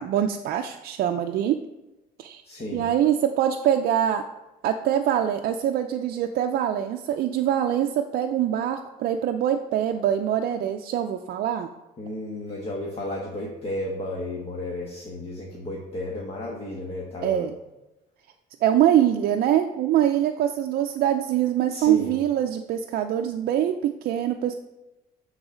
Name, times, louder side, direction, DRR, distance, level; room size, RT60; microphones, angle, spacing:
voice 1, 0.0-1.6 2.2-2.4 2.7-4.2 4.6-11.7 17.2-17.6 18.6-24.5, right 10 dB, 65° right, 5 dB, 0.5 m, -24 dB
voice 2, 2.4-2.9 12.0-17.5 21.7-22.1, left 1 dB, 35° left, -3 dB, 1.3 m, -33 dB
8.8 x 4.0 x 4.9 m, 1.0 s
cardioid pair, 110°, 17 cm